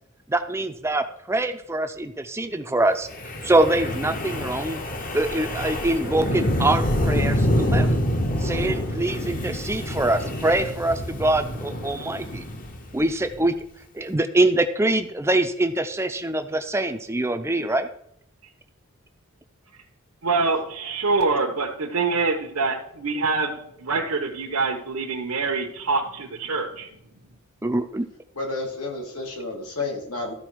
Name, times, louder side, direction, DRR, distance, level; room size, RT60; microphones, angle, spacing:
voice 1, 0.3-3.1 3.4-4.8 5.1-8.0 8.4-12.4 12.9-13.5 13.9-17.9 27.6-28.1, right 2 dB, 10° right, 8 dB, 0.5 m, -24 dB
Wind, 3.1-13.4, equal, 40° left, 0.9 m, -26 dB
voice 2, 20.2-26.9, right 4 dB, 75° right, -1 dB, 1.0 m, -25 dB
voice 3, 28.4-30.3, left 3 dB, 85° left, 0 dB, 2.4 m, -31 dB
13.5 x 4.6 x 4.6 m, 0.74 s
head